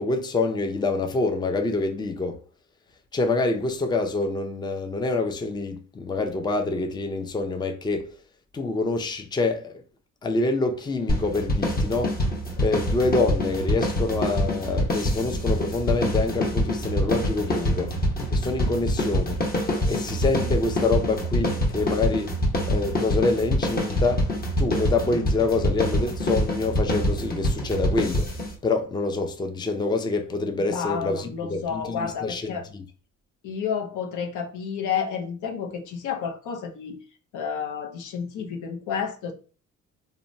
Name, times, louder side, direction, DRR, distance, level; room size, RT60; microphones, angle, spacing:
voice 1, 0.0-2.4 3.1-8.1 8.5-9.8 10.2-12.1 12.6-17.9 18.3-19.4 19.9-22.3 22.7-24.3 24.6-28.3 28.6-32.8, left 3 dB, 15° left, 0.4 m, -26 dB
sound 1, 11.1-28.5, equal, 30° left, 0.9 m, -25 dB
voice 2, 30.6-32.7 33.4-37.0 37.3-39.3, left 7 dB, 80° left, 0.6 m, -30 dB
2.8 x 2.2 x 2.6 m
cardioid pair, 90°, 30 cm